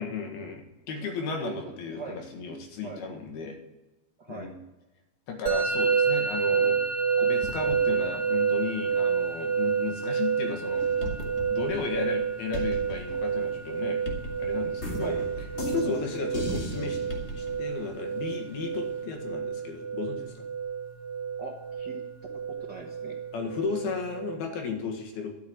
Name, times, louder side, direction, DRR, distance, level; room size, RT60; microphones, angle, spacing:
voice 1, 0.0-3.6 4.3-4.5 5.3-6.8 7.2-10.8 11.5-14.0 14.4-15.2 15.7-17.0 17.4-20.4 23.3-25.3, left 5 dB, 90° left, 3 dB, 3.7 m, -34 dB
voice 2, 1.4-2.2 2.8-3.0 4.2-4.5 15.0-15.2 21.4-22.0 22.7-23.2, right 4 dB, 90° right, 1 dB, 0.9 m, -40 dB
Musical instrument, 5.5-24.4, right 6 dB, 60° right, 2.5 m, -29 dB
sound 1, 7.2-19.0, right 1 dB, 20° right, 0.6 m, -47 dB
sound 2, 10.8-12.2 12.5-17.6, left 1 dB, 40° left, 0.9 m, -36 dB
12.5 x 7.2 x 8.9 m, 1.1 s
omnidirectional pair, 4.2 m